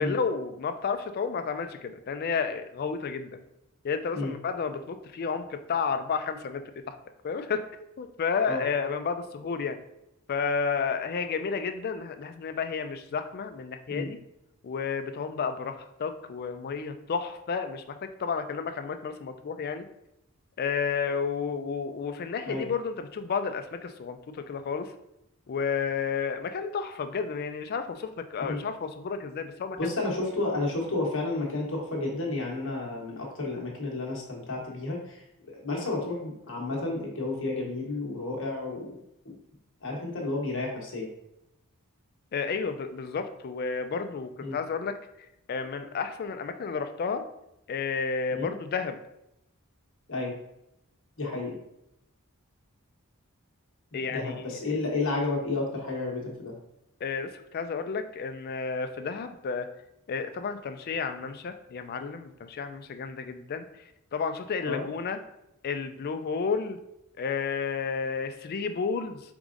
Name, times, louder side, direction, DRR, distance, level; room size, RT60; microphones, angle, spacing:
voice 1, 0.0-3.4 3.8-7.0 7.2-7.6 8.0-9.8 10.3-14.2 14.6-19.9 20.6-24.9 25.5-29.9 42.3-45.0 45.5-47.2 47.7-49.0 53.9-54.4 57.0-59.7 60.1-63.7 64.1-65.2 65.6-66.8 67.2-69.2, left 5 dB, 45° left, 8 dB, 0.3 m, -31 dB
voice 2, 29.8-39.0 39.2-39.3 39.8-41.1 44.4-44.6 48.3-48.5 50.1-50.3 51.2-51.6 53.9-56.6 64.6-64.8, left 2 dB, 60° left, -2 dB, 1.1 m, -31 dB
4.7 x 3.6 x 2.5 m, 0.83 s
head